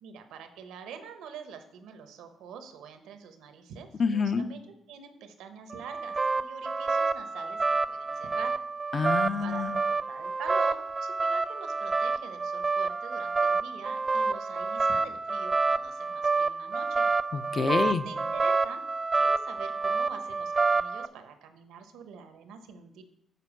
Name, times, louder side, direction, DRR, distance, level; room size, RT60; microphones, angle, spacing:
voice 1, 0.0-8.6 9.4-17.1 17.9-18.8 19.1-23.0, right 7 dB, 90° right, 7 dB, 0.9 m, -45 dB
voice 2, 4.0-4.5 8.9-9.8 17.3-18.1, left 5 dB, 45° left, 11 dB, 0.5 m, -27 dB
sound 1, 5.7-21.1, right 4 dB, 30° right, 0.3 m, -28 dB
6.9 x 4.5 x 6.0 m, 0.74 s
cardioid pair, 90°, 0 cm